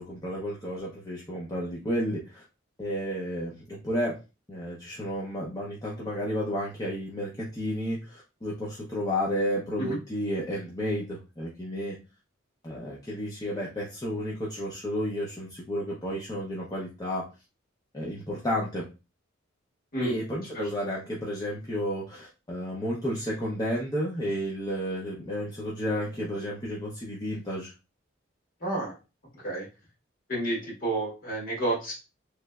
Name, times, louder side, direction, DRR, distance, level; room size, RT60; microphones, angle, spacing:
voice 1, 0.0-2.4 2.8-4.2 4.5-12.0 12.6-17.3 17.9-18.9 20.0-27.7, equal, 20° left, -5 dB, 0.6 m, -32 dB
voice 2, 28.6-29.0 29.3-29.7 30.3-31.9, right 2 dB, 45° left, -4 dB, 1.6 m, -30 dB
3.2 x 3.0 x 2.3 m, 0.29 s
head